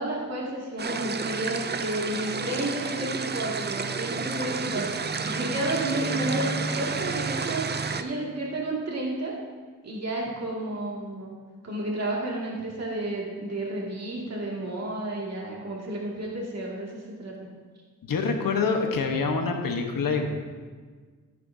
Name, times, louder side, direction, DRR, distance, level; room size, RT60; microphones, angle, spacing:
voice 1, 0.0-4.9 5.2-7.7 8.0-9.4 9.8-11.3 11.6-17.3, right 1 dB, 50° right, -3 dB, 2.3 m, -31 dB
sound 1, 0.8-8.0, right 4 dB, 30° right, 0.4 m, -30 dB
voice 2, 18.0-20.3, left 4 dB, 90° left, 3 dB, 1.3 m, -26 dB
14.0 x 10.0 x 2.8 m, 1.5 s
wide cardioid pair, 130°, 33 cm